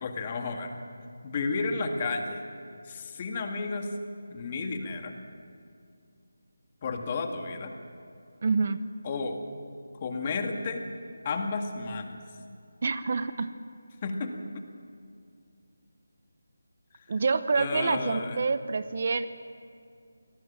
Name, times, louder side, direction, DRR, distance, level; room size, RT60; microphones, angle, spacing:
voice 1, 0.0-0.8 1.2-2.4 2.8-3.9 4.3-5.1 6.8-7.7 9.0-9.4 10.0-10.8 11.2-12.2 14.0-14.3 17.5-18.5, left 4 dB, 25° left, 4 dB, 2.0 m, -32 dB
voice 2, 8.4-8.8 12.8-13.5 17.1-19.2, right 4 dB, 45° right, 12 dB, 0.9 m, -27 dB
26.5 x 18.5 x 7.5 m, 2.3 s
figure-of-eight pair, 170°, 0 cm